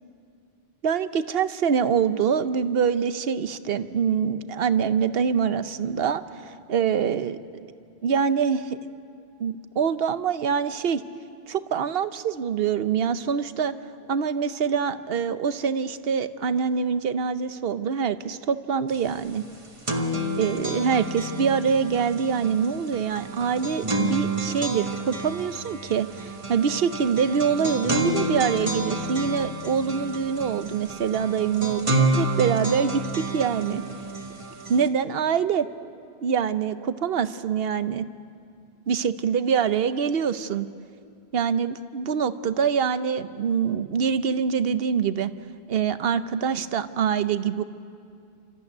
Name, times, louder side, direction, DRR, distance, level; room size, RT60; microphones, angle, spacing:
voice 1, 0.8-7.6 8.0-8.8 9.4-11.0 11.5-13.7 14.1-19.4 20.4-33.8 34.7-35.7 36.2-38.1 38.9-40.7 41.3-45.3 45.7-47.6, right 7 dB, 65° right, 12 dB, 1.0 m, -25 dB
sound 1, 18.9-19.0 19.3-34.9, right 1 dB, 30° right, 1.4 m, -29 dB
27.0 x 14.0 x 9.4 m, 2.3 s
omnidirectional pair, 1.1 m